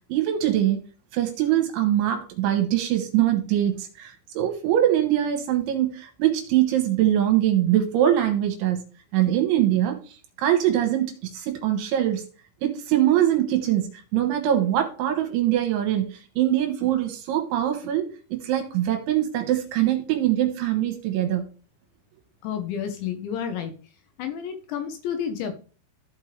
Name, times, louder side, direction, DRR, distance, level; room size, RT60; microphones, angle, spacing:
voice 1, 0.1-0.8 1.1-8.8 9.1-12.3 12.6-21.5, right 12 dB, 80° right, 3.4 m, -23 dB
voice 2, 22.4-23.7 24.2-25.6, left 8 dB, 75° left, 3.1 m, -30 dB
14.5 x 5.2 x 3.3 m
omnidirectional pair, 5.5 m